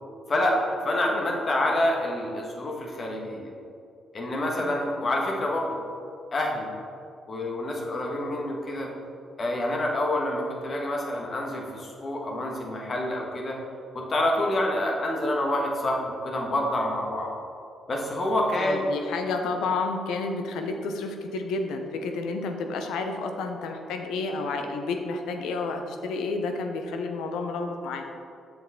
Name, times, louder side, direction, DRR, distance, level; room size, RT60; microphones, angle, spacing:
voice 1, 0.3-3.5 4.1-5.8 6.3-6.7 7.3-8.9 9.4-13.6 13.9-17.3 17.9-19.0, left 1 dB, 45° left, -1 dB, 1.5 m, -27 dB
voice 2, 1.1-1.4 4.6-4.8 18.5-28.0, left 3 dB, 80° left, 5 dB, 0.7 m, -31 dB
7.2 x 6.2 x 3.7 m, 2.5 s
supercardioid pair, 55°, 0 cm